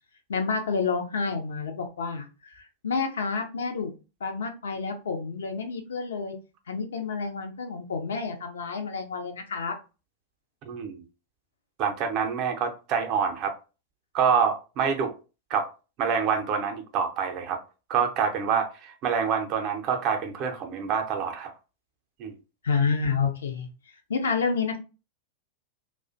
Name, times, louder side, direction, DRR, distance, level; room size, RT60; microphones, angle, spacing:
voice 1, 0.3-3.9 4.2-6.4 6.7-9.7 22.6-23.7 24.1-24.8, left 5 dB, 65° left, 5 dB, 0.5 m, -29 dB
voice 2, 10.7-11.0 11.8-13.5 14.1-15.1 15.5-15.7 16.0-17.6 17.9-21.5 22.2-22.3, right 6 dB, 40° right, 5 dB, 0.5 m, -26 dB
2.4 x 2.1 x 2.5 m, 0.31 s
figure-of-eight pair, 90°, 0 cm